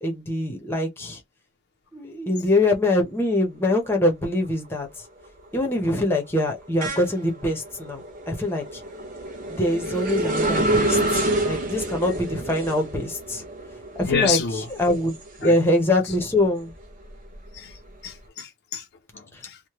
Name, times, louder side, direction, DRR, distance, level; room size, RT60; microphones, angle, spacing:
voice 1, 0.0-1.2 1.9-4.9 5.5-8.8 9.6-13.4 14.0-14.4 14.8-16.7, left 1 dB, 10° left, 0.7 m, -24 dB
sound 1, 3.9-4.3 4.7-15.9 16.3-18.1, right 1 dB, 40° right, 0.7 m, -29 dB
voice 2, 14.0-14.7 15.4-15.5 17.5-17.8 18.0-18.9 19.1-19.6, left 7 dB, 50° left, 0.4 m, -28 dB
3.0 x 2.1 x 2.9 m
head